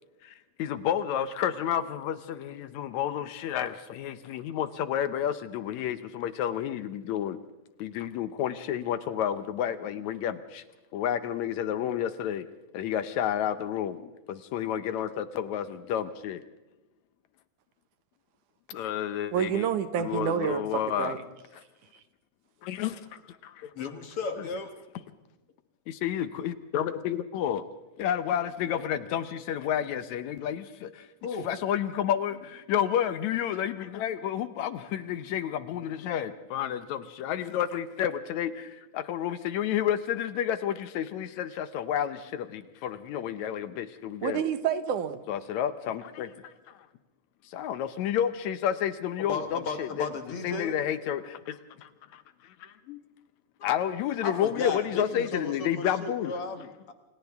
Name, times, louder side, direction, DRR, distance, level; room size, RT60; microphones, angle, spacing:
voice 1, 0.2-7.4 7.8-10.6 10.9-12.5 12.7-16.4 18.7-19.7 20.0-21.2 22.6-23.7 24.4-24.5 25.9-27.6 28.0-31.1 31.4-44.4 45.3-46.5 47.5-50.1 50.4-52.7 53.6-56.4, left 10 dB, 75° left, 12 dB, 2.0 m, -30 dB
voice 2, 19.3-20.6 21.0-21.2 44.2-45.2, right 8 dB, 80° right, 10 dB, 2.5 m, -28 dB
voice 3, 23.8-24.7 31.2-31.5 49.2-50.7 52.9-53.0 54.2-56.9, left 4 dB, 55° left, 6 dB, 1.8 m, -34 dB
29.0 x 27.0 x 3.5 m, 1.1 s
omnidirectional pair, 3.6 m